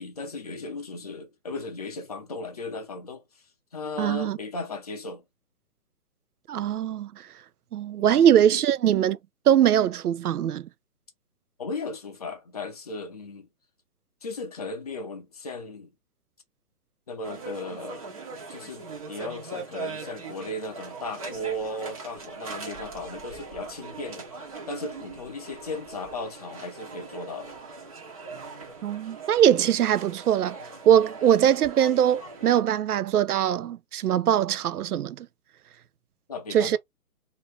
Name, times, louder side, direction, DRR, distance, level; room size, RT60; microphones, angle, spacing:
voice 1, 0.0-3.2 3.7-5.2 8.0-8.2 8.5-8.6 11.6-13.5 14.2-15.9 17.1-18.0 18.5-24.3 24.7-27.5 36.3-36.8, left 2 dB, 25° left, 0.6 m, -36 dB
voice 2, 4.0-4.4 6.5-7.1 7.7-9.2 9.5-10.6 28.8-30.6 30.9-35.3 36.5-36.8, right 10 dB, 85° right, 0.6 m, -22 dB
sound 1, 17.2-32.6, right 4 dB, 25° right, 0.8 m, -41 dB
3.0 x 2.7 x 3.2 m
hypercardioid pair, 165°, 44 cm